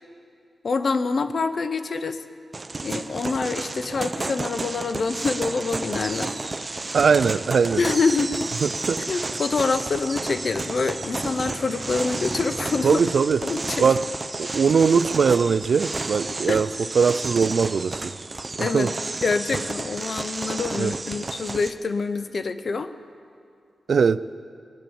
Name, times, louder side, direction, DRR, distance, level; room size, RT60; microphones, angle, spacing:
voice 1, 0.6-2.2 2.8-6.3 7.8-8.5 9.1-13.0 13.4-13.9 16.5-16.6 18.6-18.9 19.2-22.9, left 4 dB, 60° left, 11 dB, 0.8 m, -26 dB
sound 1, 2.5-21.7, right 3 dB, 35° right, 0.7 m, -31 dB
voice 2, 6.9-7.8 8.6-9.0 12.8-13.4 13.8-14.1 14.4-16.7 16.9-18.1 18.6-18.9 20.8-20.9 23.9-24.2, right 6 dB, 70° right, 16 dB, 0.4 m, -20 dB
21.0 x 8.9 x 7.1 m, 2.3 s
cardioid pair, 65°, 0 cm